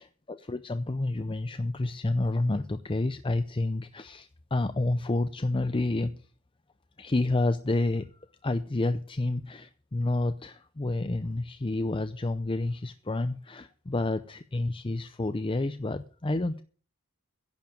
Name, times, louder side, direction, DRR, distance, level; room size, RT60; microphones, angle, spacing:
voice 1, 0.0-6.1 7.0-8.1 8.4-16.6, left 2 dB, 25° left, 10 dB, 0.6 m, -29 dB
10.5 x 7.2 x 9.2 m, 0.41 s
head